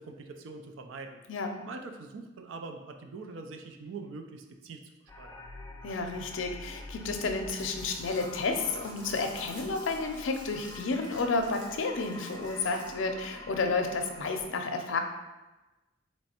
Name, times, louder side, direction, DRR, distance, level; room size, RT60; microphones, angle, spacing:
voice 1, 0.0-1.2 1.6-4.8 5.2-5.3, right 3 dB, 80° right, 5 dB, 0.4 m, -43 dB
sound 1, 5.1-14.4, left 1 dB, 15° left, 0.3 m, -46 dB
voice 2, 5.8-15.0, left 3 dB, 80° left, 4 dB, 0.5 m, -31 dB
Crumpling crinkling, 7.5-13.1, equal, 25° right, 1.2 m, -51 dB
3.2 x 3.1 x 4.2 m, 1.1 s
head